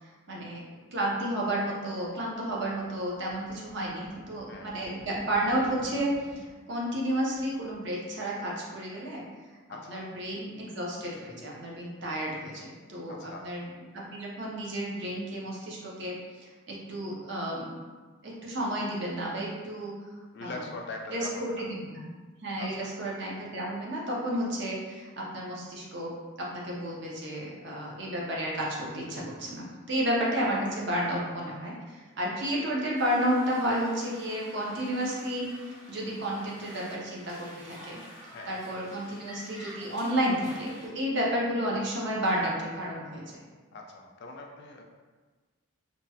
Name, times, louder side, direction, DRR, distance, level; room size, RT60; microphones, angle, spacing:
voice 1, 0.3-9.2 9.9-13.7 13.9-17.7 18.2-19.9 20.4-20.6 21.1-21.3 21.6-22.1 22.4-31.7 32.2-35.5 35.9-38.0 38.5-43.4, equal, 55° right, -4 dB, 0.6 m, -31 dB
sound 1, 2.2-6.6 6.9-7.0 7.3-7.9, right 2 dB, 80° right, 1.1 m, -50 dB
voice 2, 9.7-10.1 13.1-13.5 20.3-21.7 22.6-22.9 31.1-31.2 31.5-31.6 34.9-35.0 38.3-38.6 43.7-44.8, left 2 dB, 50° left, 1 dB, 0.3 m, -42 dB
sound 2, 32.9-40.9, equal, 30° right, 0.9 m, -49 dB
2.9 x 2.2 x 2.7 m, 1.4 s
head